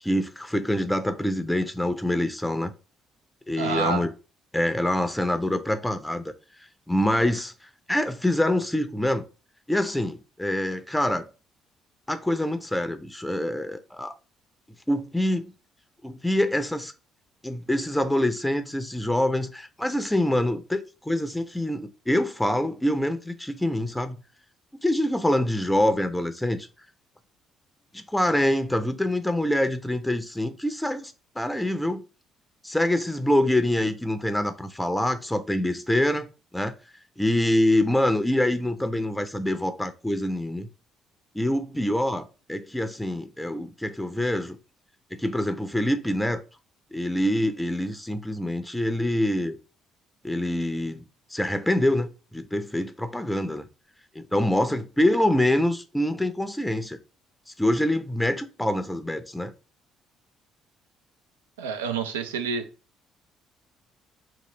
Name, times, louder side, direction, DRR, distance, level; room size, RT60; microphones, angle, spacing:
voice 1, 0.0-2.7 3.5-4.1 4.5-6.3 6.9-9.2 9.7-11.2 12.1-14.1 14.9-15.5 16.0-16.9 17.4-24.2 24.8-26.7 27.9-32.0 32.6-36.3 36.5-36.7 37.2-40.7 41.3-44.6 45.1-46.4 46.9-49.6 50.2-51.0 51.3-53.7 54.2-57.0 57.5-59.5, left 1 dB, 10° left, 0.5 m, -25 dB
voice 2, 3.6-4.0 61.6-62.6, right 5 dB, 85° right, 0.4 m, -28 dB
2.9 x 2.4 x 3.2 m
hypercardioid pair, 50°, 0 cm